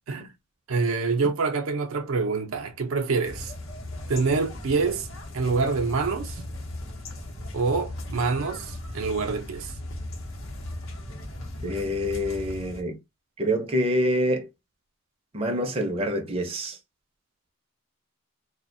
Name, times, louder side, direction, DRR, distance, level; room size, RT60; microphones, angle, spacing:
voice 1, 0.7-3.5 4.1-5.1 5.3-6.4 7.5-9.7, right 4 dB, 80° right, 0.5 m, -26 dB
sound 1, 3.2-12.8, left 1 dB, 75° left, 0.7 m, -37 dB
voice 2, 11.6-13.0 13.4-14.5 15.3-16.8, equal, 30° right, 0.5 m, -26 dB
2.4 x 2.1 x 2.5 m
head